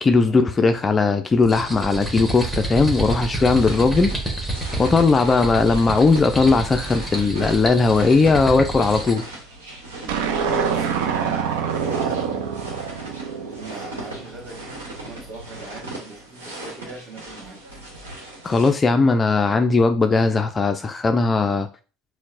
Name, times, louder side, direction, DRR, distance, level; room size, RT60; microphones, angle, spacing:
voice 1, 0.0-4.1 4.8-9.2 18.4-21.7, left 4 dB, 25° left, 0.3 m, -18 dB
sound 1, 1.4-9.3, right 2 dB, 10° right, 1.2 m, -29 dB
sound 2, 3.0-18.7, right 2 dB, 85° right, 1.0 m, -38 dB
sound 3, 10.1-14.5, right 7 dB, 70° right, 0.5 m, -26 dB
voice 2, 10.4-12.9 13.3-17.6, right 2 dB, 30° right, 1.4 m, -41 dB
4.4 x 2.0 x 2.6 m
hypercardioid pair, 75°, 0 cm